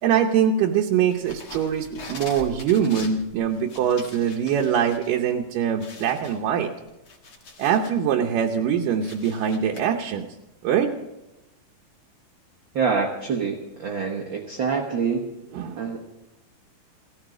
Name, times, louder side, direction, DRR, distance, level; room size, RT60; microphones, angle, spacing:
voice 1, 0.0-6.7 7.6-10.3 10.6-10.9 15.5-15.9, right 8 dB, 80° right, 1 dB, 2.4 m, -23 dB
sound 1, 1.1-5.1 5.4-5.5 5.8-8.0 8.4-9.8, left 3 dB, 45° left, 2.2 m, -43 dB
voice 2, 12.7-15.3 15.8-16.0, right 5 dB, 60° right, 0 dB, 1.3 m, -26 dB
17.0 x 14.0 x 5.0 m, 0.96 s
omnidirectional pair, 3.8 m